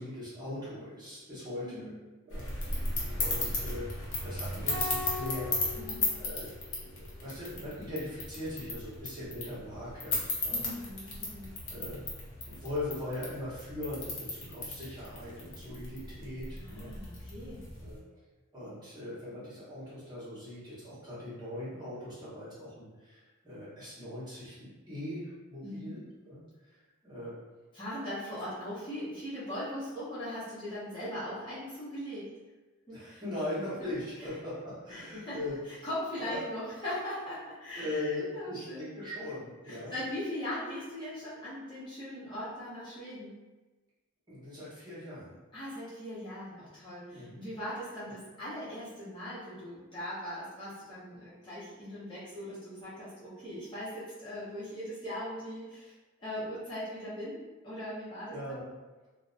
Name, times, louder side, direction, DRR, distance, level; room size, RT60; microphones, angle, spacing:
voice 1, 0.0-1.9 2.2-2.5 2.7-5.6 6.2-6.5 6.8-10.6 11.7-12.0 12.4-16.9 17.8-18.0 18.5-26.8 27.0-27.3 32.9-35.6 36.2-36.4 37.7-39.9 44.3-45.3 47.1-47.4 58.3-58.6, left 1 dB, 20° right, -11 dB, 1.0 m, -40 dB
voice 2, 1.6-2.0 5.8-6.1 10.5-11.5 16.6-17.6 25.6-26.0 27.7-32.3 32.9-33.0 34.2-34.3 34.9-35.4 35.8-38.9 39.7-43.3 45.5-55.9 56.2-57.4 57.6-58.6, left 1 dB, 20° left, -11 dB, 0.7 m, -40 dB
sound 1, 2.3-18.0, left 2 dB, 60° left, 0.7 m, -36 dB
sound 2, 4.7-7.0, left 3 dB, 60° right, 0.5 m, -40 dB
2.4 x 2.0 x 2.4 m, 1.2 s
head